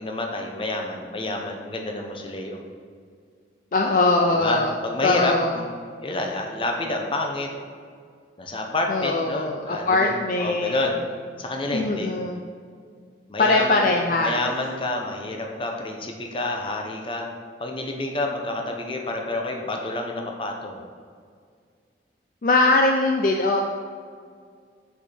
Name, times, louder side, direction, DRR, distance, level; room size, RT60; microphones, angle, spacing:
voice 1, 0.0-2.6 4.3-5.7 6.0-7.5 8.4-10.9 11.4-12.1 13.3-13.9 14.2-17.3 17.6-20.8, left 2 dB, 30° left, 2 dB, 0.8 m, -28 dB
voice 2, 3.7-4.7 5.0-5.6 8.9-10.9 11.7-12.4 13.4-14.4 22.4-23.6, left 2 dB, 45° left, 2 dB, 0.4 m, -21 dB
6.5 x 5.3 x 4.3 m, 2.1 s
head